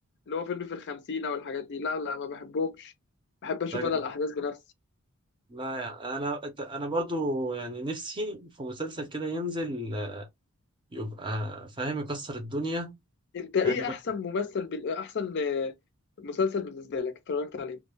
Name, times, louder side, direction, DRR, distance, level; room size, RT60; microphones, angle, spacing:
voice 1, 0.3-2.9 3.4-4.6 13.3-15.7 16.2-17.8, left 5 dB, 50° left, 0.4 m, -31 dB
voice 2, 5.5-10.3 10.9-12.9 13.6-13.8, right 1 dB, 20° right, 0.5 m, -33 dB
2.2 x 2.0 x 3.2 m
head